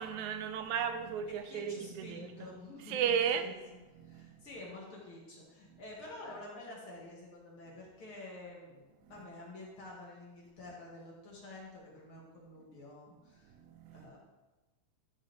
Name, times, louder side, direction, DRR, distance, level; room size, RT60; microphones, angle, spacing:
voice 1, 0.0-2.6 2.9-3.5 3.9-4.6 5.7-5.8 9.1-9.3 13.5-14.1, right 7 dB, 85° right, 8 dB, 2.1 m, -35 dB
voice 2, 1.4-3.6 4.0-13.6 13.9-14.2, left 2 dB, 50° left, -4 dB, 2.7 m, -49 dB
12.0 x 7.2 x 3.5 m, 1.2 s
omnidirectional pair, 3.3 m